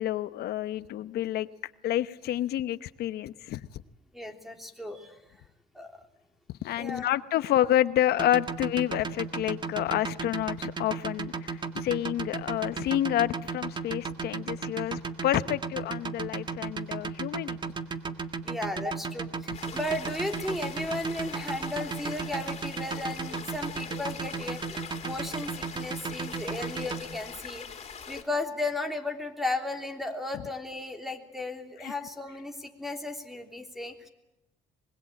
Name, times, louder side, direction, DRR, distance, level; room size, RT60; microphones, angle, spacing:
voice 1, 0.0-3.6 6.6-17.6 31.8-31.9, left 12 dB, 70° left, 14 dB, 1.0 m, -29 dB
voice 2, 4.1-5.2 5.7-5.9 6.8-7.1 18.4-27.7 28.1-34.1, left 2 dB, ahead, 6 dB, 3.2 m, -35 dB
sound 1, 8.1-27.0, right 5 dB, 25° right, 1.8 m, -34 dB
sound 2, 19.5-28.2, left 7 dB, 40° left, 3.8 m, -43 dB
25.0 x 21.5 x 8.6 m, 0.95 s
cardioid pair, 110°, 17 cm